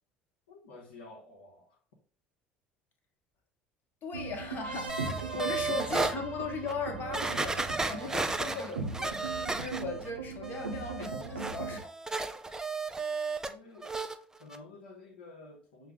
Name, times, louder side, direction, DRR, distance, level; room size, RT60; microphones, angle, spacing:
voice 1, 0.5-1.8 13.5-13.9 14.4-15.9, left 3 dB, 75° left, 0.8 m, -51 dB
voice 2, 4.0-4.9 5.3-12.1, left 4 dB, 40° left, 0.9 m, -38 dB
sound 1, 4.1-11.8, right 4 dB, 85° right, 0.5 m, -39 dB
sound 2, 4.9-6.1 6.7-6.8 7.1-10.1 10.4-13.5 13.8-14.1 14.5-14.6, right 3 dB, 10° right, 0.3 m, -34 dB
5.6 x 2.0 x 3.5 m
figure-of-eight pair, 65°, 5 cm